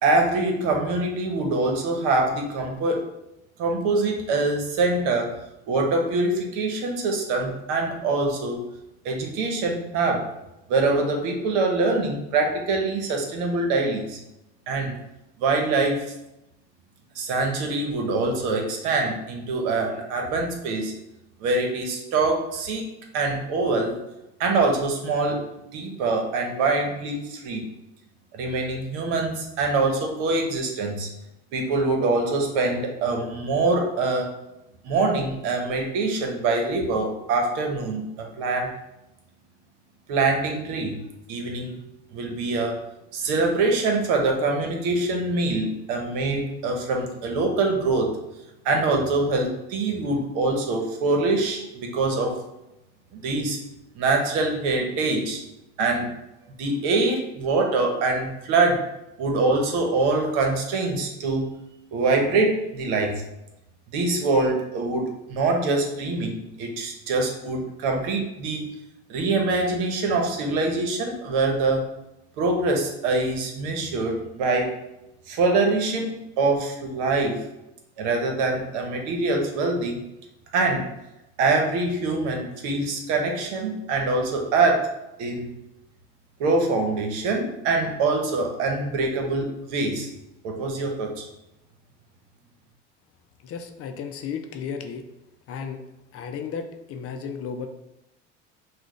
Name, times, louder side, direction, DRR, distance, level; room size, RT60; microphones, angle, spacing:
voice 1, 0.0-3.1 3.6-5.4 5.7-8.7 9.0-10.3 10.7-14.2 14.7-15.0 15.4-16.1 17.1-21.0 21.4-22.8 23.1-24.0 24.4-27.6 28.3-31.1 31.5-34.3 34.8-38.7 40.1-41.0 41.3-41.8 42.1-42.9 43.1-48.2 48.6-52.4 53.1-53.6 53.9-55.4 55.8-56.1 56.6-58.9 59.2-61.5 61.9-63.2 63.9-68.7 69.1-71.8 72.4-74.8 75.3-77.5 78.0-80.0 80.5-80.9 81.4-84.9 85.2-85.5 86.4-90.1 90.4-91.3, right 3 dB, 60° right, 2 dB, 1.2 m, -24 dB
voice 2, 93.4-95.1 95.5-95.8 96.1-97.7, left 6 dB, 40° left, 5 dB, 0.6 m, -34 dB
5.9 x 2.5 x 3.2 m, 0.90 s
hypercardioid pair, 80°, 36 cm